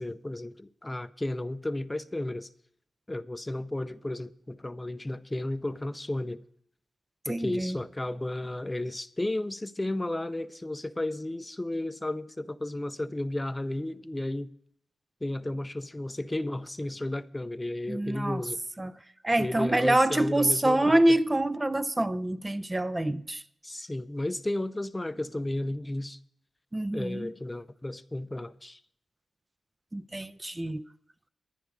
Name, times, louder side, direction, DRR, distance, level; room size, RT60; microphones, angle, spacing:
voice 1, 0.0-2.5 3.1-6.4 7.3-14.5 15.2-18.6 19.4-21.2 23.6-26.2 26.9-28.8, left 1 dB, 20° left, 0.6 m, -33 dB
voice 2, 7.3-7.8 17.9-18.4 18.8-18.9 19.2-23.4 26.7-27.3 29.9-30.8, right 1 dB, 25° right, 0.5 m, -26 dB
11.5 x 10.0 x 4.7 m
supercardioid pair, 45°, 0 cm